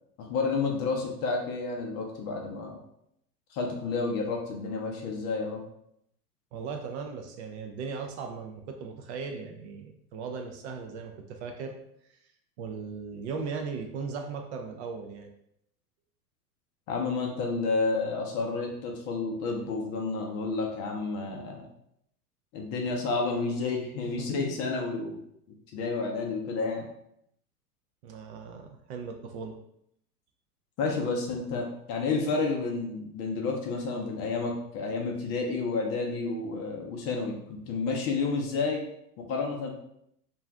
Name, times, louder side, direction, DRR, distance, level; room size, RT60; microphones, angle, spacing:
voice 1, 0.2-2.8 3.5-5.6 16.9-21.7 22.5-25.2 25.7-26.9 30.8-38.8 39.2-39.7, left 4 dB, 35° left, 0 dB, 0.5 m, -30 dB
voice 2, 6.5-11.7 12.6-15.3 24.2-24.3 28.0-29.6, right 5 dB, 45° right, 4 dB, 0.4 m, -38 dB
2.5 x 2.3 x 3.3 m, 0.75 s
hypercardioid pair, 100°, 48 cm